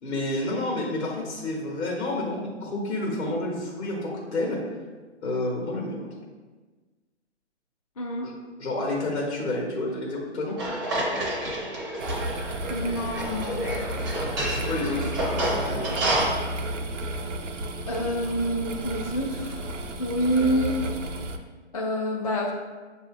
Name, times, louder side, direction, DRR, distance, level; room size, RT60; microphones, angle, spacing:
voice 1, 0.0-4.6 5.2-6.1 8.2-8.3 8.6-10.5 14.1-16.3, left 2 dB, 60° left, -2 dB, 1.2 m, -30 dB
voice 2, 8.0-8.3 12.7-13.7 17.9-20.8 21.7-22.5, equal, 35° left, -2 dB, 0.4 m, -27 dB
sound 1, 10.6-16.3, right 1 dB, 15° right, 0.5 m, -29 dB
sound 2, 12.0-21.4, right 1 dB, 85° right, 0.6 m, -33 dB
7.0 x 2.7 x 2.5 m, 1.3 s
hypercardioid pair, 145°, 36 cm